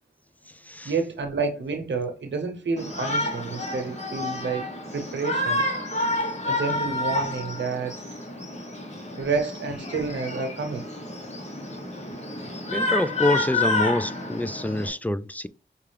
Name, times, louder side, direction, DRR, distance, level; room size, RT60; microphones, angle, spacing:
voice 1, 0.8-4.7 4.9-5.7 6.4-8.0 9.2-10.9, right 4 dB, 85° right, 0.9 m, -29 dB
Shout, 2.8-14.9, left 2 dB, 35° left, 1.3 m, -29 dB
voice 2, 12.6-15.5, left 1 dB, 10° left, 0.3 m, -26 dB
5.4 x 2.5 x 3.4 m
cardioid pair, 50°, 18 cm